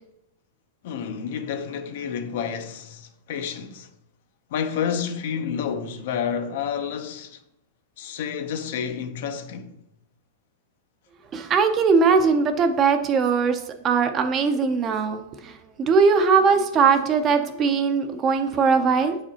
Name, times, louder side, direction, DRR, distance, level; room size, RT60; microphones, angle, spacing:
voice 1, 0.8-3.9 4.5-7.4 8.0-9.7, left 7 dB, 65° left, 0.6 m, -29 dB
voice 2, 11.3-19.2, right 5 dB, 25° right, 0.5 m, -20 dB
7.6 x 4.9 x 2.8 m
supercardioid pair, 150°, 0 cm